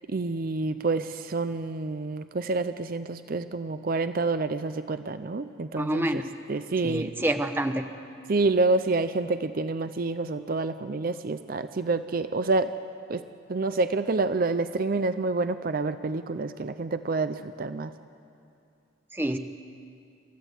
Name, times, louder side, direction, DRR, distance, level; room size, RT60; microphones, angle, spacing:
voice 1, 0.1-6.2 6.5-7.1 8.3-12.7 13.1-13.2 13.5-17.9, right 3 dB, 50° right, 11 dB, 0.5 m, -28 dB
voice 2, 5.8-6.2 6.8-7.9 19.1-19.4, right 1 dB, 10° right, 7 dB, 0.9 m, -27 dB
27.5 x 14.0 x 8.2 m, 2.5 s
head